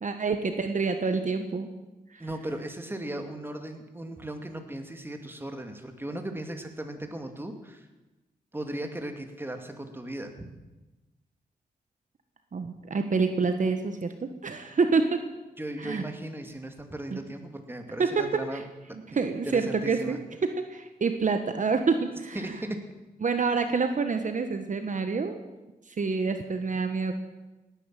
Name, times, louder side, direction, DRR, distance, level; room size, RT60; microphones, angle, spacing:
voice 1, 0.0-1.7 2.1-2.3 12.5-14.1 14.4-15.2 15.8-16.0 17.1-17.2 18.0-18.3 18.5-18.6 18.9-22.6 23.2-25.4 25.9-27.1, right 4 dB, 55° right, 7 dB, 1.3 m, -27 dB
voice 2, 2.2-7.9 8.5-10.5 15.6-18.6 18.9-19.2 19.5-20.2 22.3-22.8, right 1 dB, 15° right, 5 dB, 2.3 m, -37 dB
17.5 x 10.0 x 7.7 m, 1.1 s
cardioid pair, 70°, 16 cm